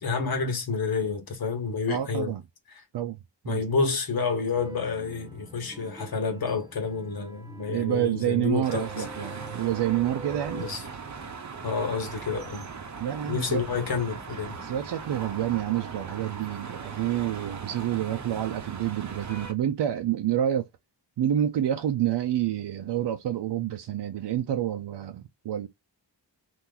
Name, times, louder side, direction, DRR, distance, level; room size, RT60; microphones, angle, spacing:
voice 1, 0.0-2.3 3.5-9.0 10.5-10.8 11.6-12.7 13.3-14.6, left 4 dB, 55° left, 1.1 m, -29 dB
voice 2, 1.9-2.4 2.9-3.2 3.4-3.6 7.7-10.7 13.0-13.6 14.6-20.7 21.2-25.7, right 11 dB, 75° right, 0.5 m, -28 dB
sound 1, 4.5-10.7, right 2 dB, 10° right, 0.3 m, -45 dB
sound 2, 8.6-19.5, right 5 dB, 40° right, 0.7 m, -39 dB
2.9 x 2.6 x 3.7 m
wide cardioid pair, 145°, 42 cm